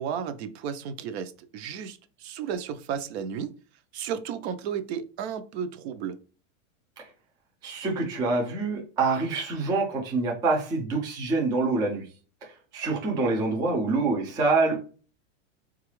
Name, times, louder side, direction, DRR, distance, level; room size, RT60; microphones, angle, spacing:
voice 1, 0.0-3.5 3.9-6.2, right 7 dB, 55° right, 0.6 m, -33 dB
voice 2, 7.6-12.1 12.4-14.8, right 3 dB, 10° right, 0.3 m, -26 dB
3.9 x 2.4 x 3.0 m
supercardioid pair, 150°, 39 cm